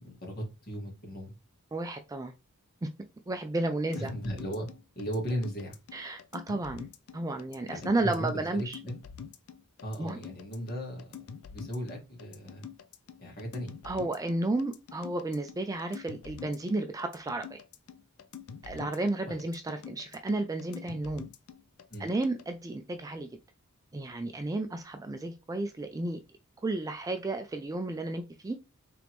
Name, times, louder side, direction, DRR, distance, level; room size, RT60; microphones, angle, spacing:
voice 1, 0.0-1.4 4.0-4.7 5.0-5.8 7.7-8.9 9.8-11.0 11.5-12.6 13.2-13.7 19.3-19.4 21.9-22.1, equal, 45° left, 1.8 m, -36 dB
voice 2, 1.7-2.3 3.3-4.1 5.9-6.9 7.1-8.8 10.0-10.2 13.8-17.6 18.6-21.3 22.0-23.3 23.9-26.2 26.6-28.6, right 2 dB, 15° right, 0.3 m, -32 dB
sound 1, 3.9-22.4, left 7 dB, 90° left, 0.5 m, -46 dB
3.8 x 3.4 x 3.0 m
head